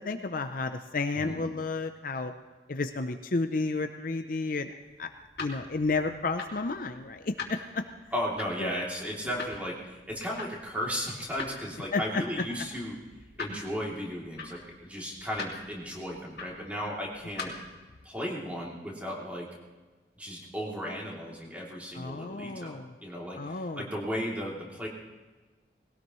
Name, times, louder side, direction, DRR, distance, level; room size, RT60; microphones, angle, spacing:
voice 1, 0.0-2.3 2.7-5.1 5.4-7.8 8.6-8.7 11.9-12.2 21.9-22.9 23.3-23.9, left 3 dB, 50° left, 7 dB, 0.6 m, -32 dB
sound 1, 4.8-17.8, left 4 dB, 65° left, 2.4 m, -44 dB
voice 2, 8.1-12.9 13.4-17.5 18.0-19.5 20.2-24.9, equal, 10° right, -4 dB, 3.0 m, -35 dB
20.0 x 17.5 x 3.2 m, 1.3 s
head